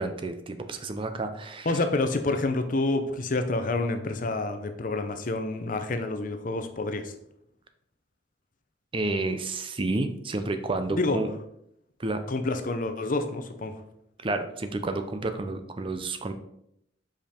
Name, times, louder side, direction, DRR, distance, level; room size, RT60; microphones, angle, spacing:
voice 1, 0.0-1.7 8.9-11.3 12.0-12.2 14.2-16.3, right 2 dB, 30° right, 8 dB, 0.5 m, -30 dB
voice 2, 1.6-7.1 10.9-11.2 12.3-13.7, left 2 dB, 45° left, 8 dB, 0.6 m, -28 dB
5.3 x 5.1 x 4.3 m, 0.76 s
head